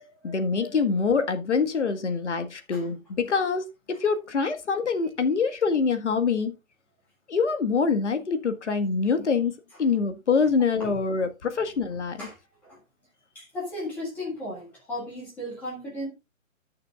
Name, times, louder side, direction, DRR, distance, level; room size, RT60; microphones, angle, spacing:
voice 1, 0.2-6.5 7.3-9.5 9.8-12.2, left 5 dB, 60° left, 1.7 m, -25 dB
voice 2, 13.4-16.1, left 1 dB, 5° left, 1.8 m, -35 dB
17.5 x 6.6 x 2.4 m
hypercardioid pair, 175°, 40 cm